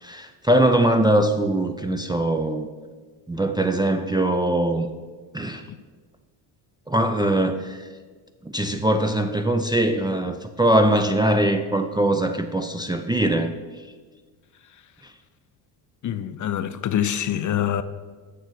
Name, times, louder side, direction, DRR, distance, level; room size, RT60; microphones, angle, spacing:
voice 1, 0.0-2.7 3.3-4.9 5.3-5.6 6.9-7.8 8.5-13.5, right 1 dB, 10° right, 0.4 m, -21 dB
voice 2, 16.0-17.8, left 10 dB, 40° left, 0.5 m, -25 dB
6.7 x 6.7 x 6.2 m
supercardioid pair, 85°, 48 cm